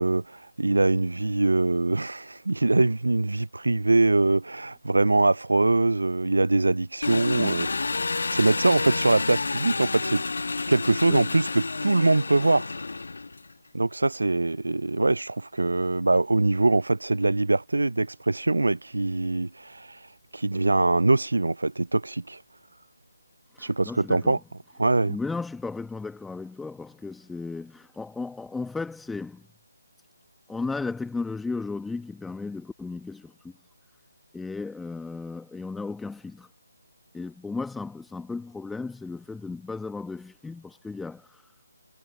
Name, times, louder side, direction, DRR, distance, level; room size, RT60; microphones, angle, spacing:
voice 1, 0.0-7.7 8.3-10.2 10.7-12.7 13.7-22.4 23.6-24.4 24.8-25.2, right 2 dB, 80° right, 0.4 m, -23 dB
Engine, 7.0-13.5, left 3 dB, 70° left, 1.3 m, -30 dB
voice 2, 7.4-7.7 11.1-11.2 23.5-24.4 25.1-29.4 30.5-33.3 34.3-36.5 37.1-41.4, left 3 dB, 5° left, 1.1 m, -35 dB
figure-of-eight pair, 155°, 0 cm